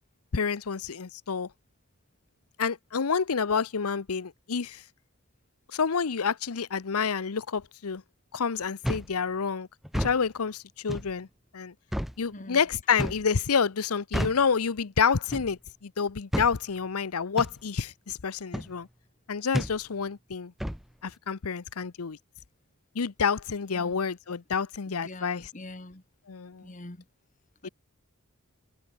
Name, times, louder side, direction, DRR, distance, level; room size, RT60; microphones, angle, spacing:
voice 1, 0.3-1.5 2.6-4.8 5.7-8.0 8.3-9.7 9.9-11.3 11.5-11.7 12.2-18.9 19.3-20.5 21.0-22.2 22.9-25.5 26.3-26.7 27.6-27.7, left 6 dB, 85° left, 0.8 m, -28 dB
sound 1, 8.8-9.1 9.8-10.2 10.9-11.1 11.9-12.2 13.0-13.3 14.1-14.5 15.3-15.6 16.3-16.6 17.4-17.6 18.5-18.7 19.5-19.8 20.6-20.8, equal, ahead, 0.8 m, -30 dB
voice 2, 24.9-26.0 26.6-27.0 27.6-27.7, left 1 dB, 35° left, 1.7 m, -44 dB
head